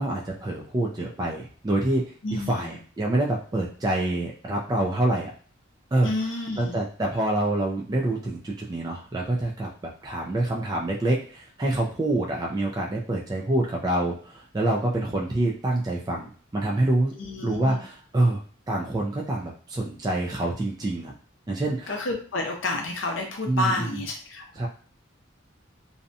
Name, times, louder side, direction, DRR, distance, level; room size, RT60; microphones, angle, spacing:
voice 1, 0.0-2.0 2.3-5.3 5.9-6.1 6.6-9.7 10.0-17.1 17.4-18.4 18.7-21.1 21.5-21.9 23.5-24.0 24.5-24.7, right 1 dB, 20° right, -2 dB, 0.3 m, -26 dB
voice 2, 2.2-2.8 6.0-6.8 17.1-17.8 21.9-24.4, left 2 dB, 65° left, 1 dB, 0.5 m, -30 dB
2.6 x 2.1 x 2.6 m, 0.43 s
head